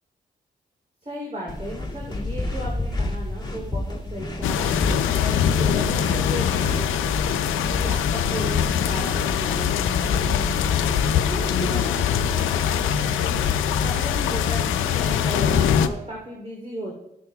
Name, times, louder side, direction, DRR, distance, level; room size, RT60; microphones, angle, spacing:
voice 1, 1.0-6.9 7.7-10.3 11.2-16.9, right 1 dB, 30° right, -3 dB, 3.1 m, -35 dB
sound 1, 1.5-11.6, left 2 dB, 20° left, 2.2 m, -31 dB
sound 2, 4.4-15.9, left 8 dB, 85° left, 0.5 m, -23 dB
14.5 x 6.6 x 2.3 m, 0.83 s
supercardioid pair, 40°, 20 cm